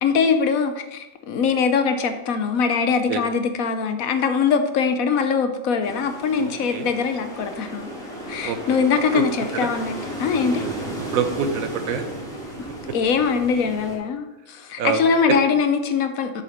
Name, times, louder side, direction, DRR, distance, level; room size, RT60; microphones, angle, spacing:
voice 1, 0.0-7.9 8.3-10.7 12.9-16.3, left 5 dB, 80° left, 8 dB, 1.2 m, -22 dB
sound 1, 5.8-14.0, right 1 dB, 5° left, 2.0 m, -34 dB
voice 2, 6.4-6.9 8.4-8.8 9.1-9.2 9.5-9.7 11.1-12.2 12.9-13.0 14.8-15.0 15.3-15.4, right 6 dB, 80° right, 8 dB, 1.2 m, -26 dB
7.2 x 6.9 x 4.3 m, 1.0 s
omnidirectional pair, 1.5 m